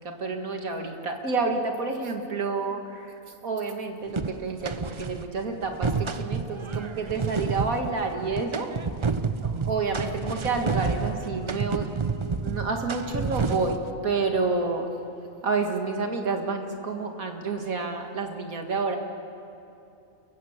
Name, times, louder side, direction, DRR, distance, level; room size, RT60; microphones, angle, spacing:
voice 1, 0.0-3.1 3.4-8.7 9.4-11.9 12.4-13.8 14.0-14.9 15.4-19.0, right 4 dB, 85° right, 4 dB, 2.3 m, -29 dB
sound 1, 4.2-5.2 5.6-13.9, right 5 dB, 40° right, 0.4 m, -30 dB
29.0 x 15.5 x 7.3 m, 2.7 s
omnidirectional pair, 1.4 m